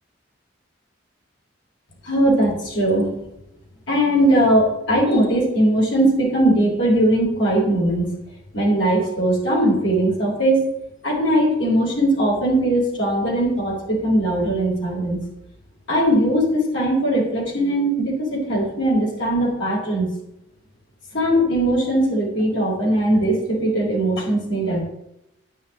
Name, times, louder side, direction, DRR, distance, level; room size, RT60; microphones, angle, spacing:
voice 1, 2.0-3.1 3.9-8.1 8.5-10.6 11.0-15.2 15.9-20.1 21.1-24.8, right 1 dB, 75° left, -2 dB, 4.5 m, -19 dB
11.0 x 9.5 x 3.8 m, 0.84 s
head